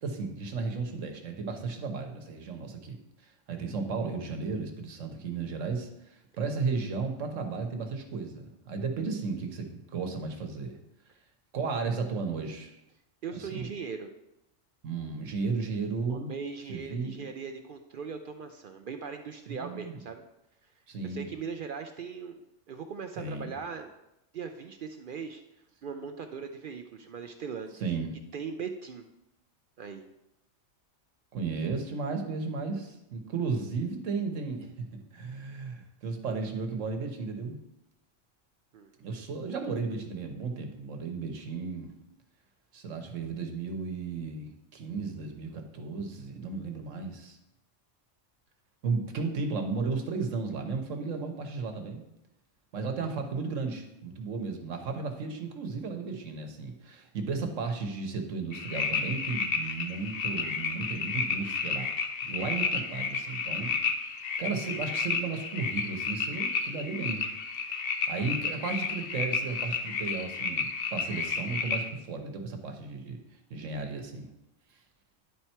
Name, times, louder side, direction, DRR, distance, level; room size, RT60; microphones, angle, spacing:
voice 1, 0.0-10.8 11.5-12.8 13.3-13.7 14.8-16.4 16.7-17.3 19.5-20.0 20.9-21.3 23.2-23.5 27.8-28.2 31.3-37.6 39.0-41.9 42.7-47.4 48.8-52.1 52.7-61.9 62.3-63.7 64.4-67.2 68.1-73.2 73.5-74.3, right 4 dB, 90° right, 4 dB, 1.3 m, -34 dB
voice 2, 13.2-14.1 16.1-20.2 21.0-22.4 22.7-23.9 24.3-25.4 25.8-27.9 28.3-29.0 29.8-30.0 38.7-39.2, right 6 dB, 60° right, 6 dB, 0.6 m, -39 dB
sound 1, 58.5-71.9, left 5 dB, 55° left, 0.8 m, -32 dB
10.5 x 4.3 x 4.5 m, 0.86 s
omnidirectional pair, 1.3 m